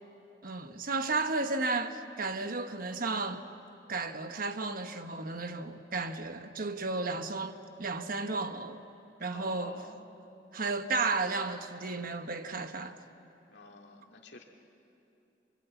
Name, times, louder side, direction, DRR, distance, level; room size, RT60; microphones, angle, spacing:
voice 1, 0.4-3.4 3.9-8.8 9.2-9.9 10.5-13.0, right 3 dB, 55° right, 1.2 m, -33 dB
voice 2, 9.3-10.0 13.5-14.4, left 3 dB, 75° left, 2.4 m, -49 dB
26.0 x 24.0 x 8.2 m
head